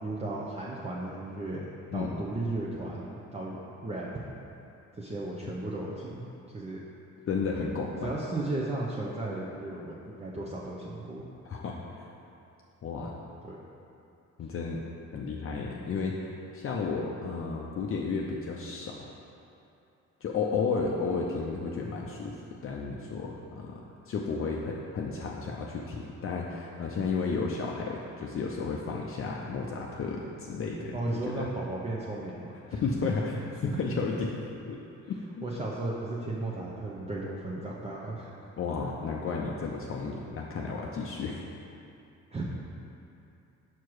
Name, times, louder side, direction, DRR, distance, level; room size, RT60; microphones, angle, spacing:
voice 1, 0.0-3.6 3.8-4.2 4.9-6.2 6.5-6.8 8.0-11.3 13.4-13.6 30.9-32.8 35.4-38.3 42.3-42.4, right 2 dB, 20° right, -6 dB, 0.7 m, -35 dB
voice 2, 7.3-8.1 11.5-12.1 12.8-13.2 14.4-14.8 15.1-19.1 20.2-22.3 22.6-31.0 31.4-31.5 32.7-33.3 33.6-34.3 34.7-34.8 35.1-35.4 38.6-41.4, left 4 dB, 45° left, -2 dB, 0.6 m, -33 dB
6.0 x 4.6 x 4.7 m, 2.7 s
cardioid pair, 90°, 30 cm